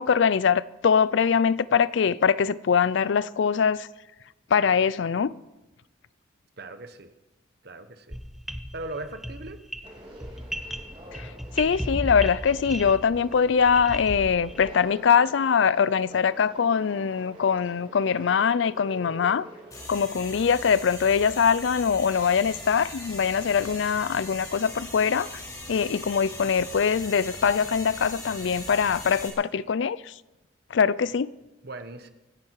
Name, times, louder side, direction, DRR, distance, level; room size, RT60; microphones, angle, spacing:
voice 1, 0.0-3.9 4.5-5.3 11.1-11.3 11.6-19.5 19.9-25.3 25.7-30.1 30.7-31.3, left 6 dB, 65° left, 0.4 m, -23 dB
voice 2, 6.6-7.1 7.6-8.2 8.7-9.6 31.6-32.1, right 2 dB, 55° right, 1.2 m, -38 dB
sound 1, 8.1-14.8, equal, ahead, 0.8 m, -35 dB
Conversation, 9.8-19.8, equal, 25° right, 2.6 m, -47 dB
sound 2, 19.7-29.3, left 2 dB, 20° left, 4.7 m, -40 dB
25.0 x 10.5 x 4.7 m
head